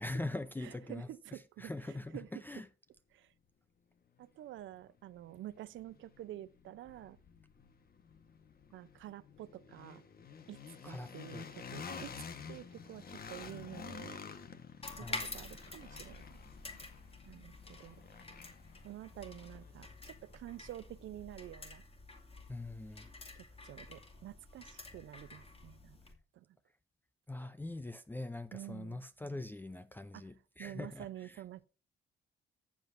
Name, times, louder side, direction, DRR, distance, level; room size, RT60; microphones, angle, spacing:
voice 1, 0.0-2.7 10.8-11.5 15.0-15.3 22.5-23.1 27.3-31.4, left 2 dB, 10° left, 0.5 m, -43 dB
voice 2, 0.6-2.4 3.1-3.3 4.2-7.2 8.7-10.0 10.5-14.2 14.9-16.3 17.3-18.0 18.8-21.8 23.3-26.0 26.3-26.5 28.5-29.0 30.1-30.2 30.6-31.6, right 13 dB, 75° right, 0.6 m, -49 dB
sound 1, 4.2-4.3 4.8-20.7, left 6 dB, 50° left, 1.3 m, -51 dB
sound 2, 14.8-26.1, left 3 dB, 30° left, 2.3 m, -49 dB
14.0 x 7.7 x 2.6 m
cardioid pair, 90°, 20 cm